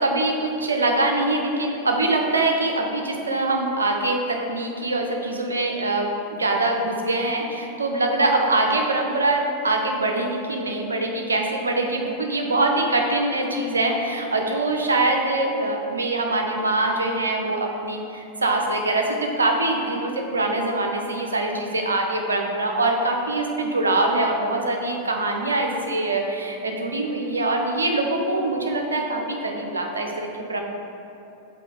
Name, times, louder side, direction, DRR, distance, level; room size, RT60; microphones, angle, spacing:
voice 1, 0.0-30.6, right 2 dB, 75° right, 2 dB, 0.8 m, -23 dB
5.8 x 4.3 x 5.5 m, 2.9 s
figure-of-eight pair, 90°, 0 cm